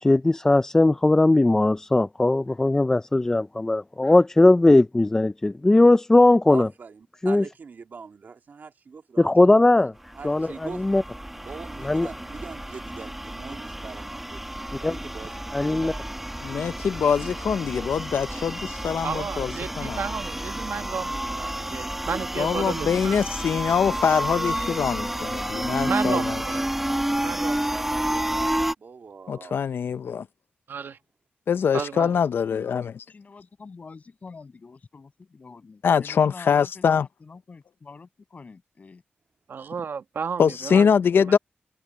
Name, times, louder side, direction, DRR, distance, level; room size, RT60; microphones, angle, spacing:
voice 1, 0.0-6.7 7.2-7.4 9.2-9.9 10.2-11.0 11.8-12.1 14.8-15.0 15.5-15.9, left 2 dB, 15° left, 0.3 m, -19 dB
voice 2, 6.5-9.3 9.6-9.7 10.2-10.9 11.3-16.2 28.8-29.7, right 5 dB, 60° right, 2.3 m, -42 dB
sound 1, 10.0-28.7, right 1 dB, 5° right, 1.3 m, -30 dB
voice 3, 16.4-20.0 22.4-26.4 29.3-30.3 31.5-32.9 35.8-37.0 40.4-41.4, left 7 dB, 85° left, 0.5 m, -23 dB
voice 4, 19.0-23.2 25.8-26.6 27.2-28.4 30.7-31.0 31.7-32.1 39.5-40.9 41.3-41.4, right 6 dB, 80° right, 1.4 m, -33 dB
voice 5, 33.1-39.0 39.7-39.9, left 4 dB, 40° left, 7.3 m, -46 dB
wide cardioid pair, 175°, 4 cm